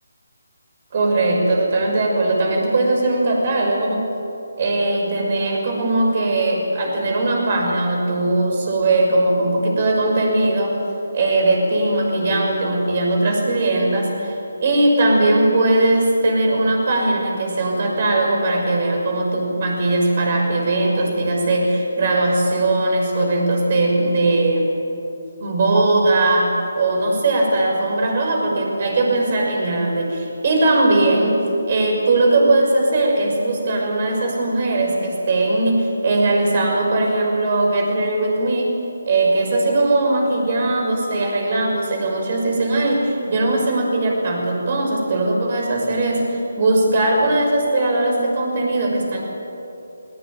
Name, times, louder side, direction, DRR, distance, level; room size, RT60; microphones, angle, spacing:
voice 1, 0.9-4.1 4.6-10.8 11.1-24.7 25.4-38.7 39.1-49.2, right 2 dB, 40° right, 1 dB, 6.0 m, -19 dB
20.5 x 20.0 x 9.3 m, 3.0 s
figure-of-eight pair, 160°, 0 cm